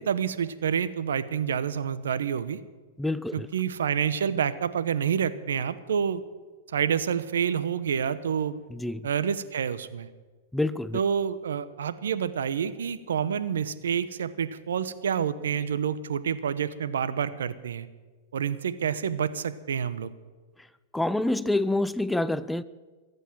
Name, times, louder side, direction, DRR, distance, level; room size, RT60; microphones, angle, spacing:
voice 1, 0.0-2.6 3.3-6.2 6.7-8.6 9.0-10.1 10.9-17.9 18.3-20.1, right 7 dB, 85° right, 1.0 m, -28 dB
voice 2, 3.0-3.5 8.7-9.1 10.5-11.0 20.9-22.6, left 2 dB, 5° left, 0.5 m, -27 dB
22.0 x 8.3 x 7.5 m
hypercardioid pair, 120°, 0 cm